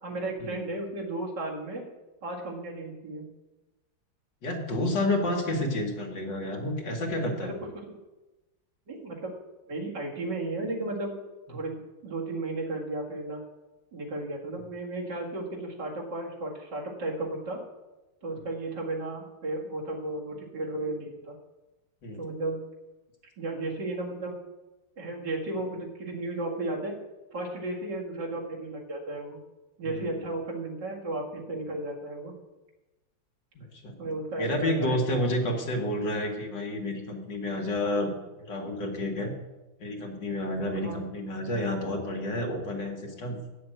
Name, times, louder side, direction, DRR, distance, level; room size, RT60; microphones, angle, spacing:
voice 1, 0.0-1.8 2.2-3.3 7.4-7.5 7.9-8.0 8.9-9.3 9.7-11.1 11.5-13.4 13.9-17.6 18.2-21.4 22.1-22.6 23.4-24.4 25.0-27.0 27.3-29.4 29.8-32.3 34.0-35.0 40.8-41.0, right 2 dB, 65° right, -3 dB, 2.8 m, -34 dB
voice 2, 4.4-7.6 22.0-22.2 29.8-30.3 33.6-33.9 34.4-38.1 38.4-39.3 39.8-43.4, left 1 dB, 70° left, 1 dB, 2.4 m, -30 dB
9.7 x 6.8 x 7.8 m, 1.1 s
omnidirectional pair, 2.1 m